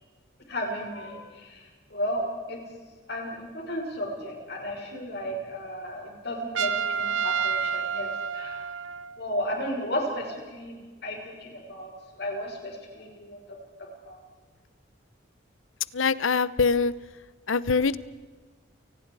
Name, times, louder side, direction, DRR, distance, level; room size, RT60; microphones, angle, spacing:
voice 1, 0.5-1.6 1.9-2.6 3.1-8.1 8.3-8.6 9.2-10.7 11.0-11.9 12.2-13.4 14.1-14.2, equal, 55° left, 1 dB, 6.0 m, -33 dB
Trumpet, 6.6-9.2, right 6 dB, 75° right, 0.9 m, -29 dB
voice 2, 15.9-16.9 17.5-18.0, left 5 dB, 80° left, 18 dB, 0.8 m, -23 dB
29.5 x 19.5 x 4.8 m, 1.4 s
head